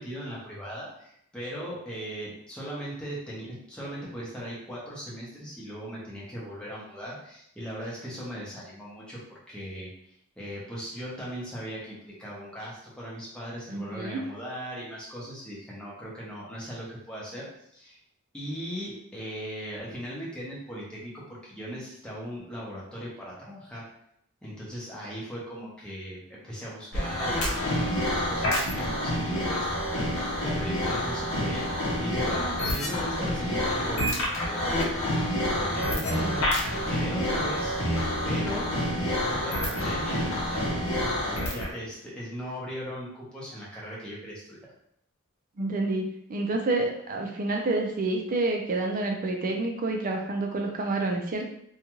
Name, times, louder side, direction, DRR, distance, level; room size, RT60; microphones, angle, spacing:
voice 1, 0.0-9.9 10.4-17.5 17.7-18.0 18.3-23.9 24.4-34.8 35.5-37.7 38.2-38.7 39.0-40.9 41.5-44.7, equal, 5° left, -7 dB, 0.8 m, -38 dB
voice 2, 13.7-14.2 36.2-36.4 45.6-51.5, right 2 dB, 40° right, 2 dB, 0.4 m, -28 dB
sound 1, 26.9-41.7, left 1 dB, 70° left, 0.7 m, -28 dB
2.6 x 2.3 x 2.9 m, 0.71 s
head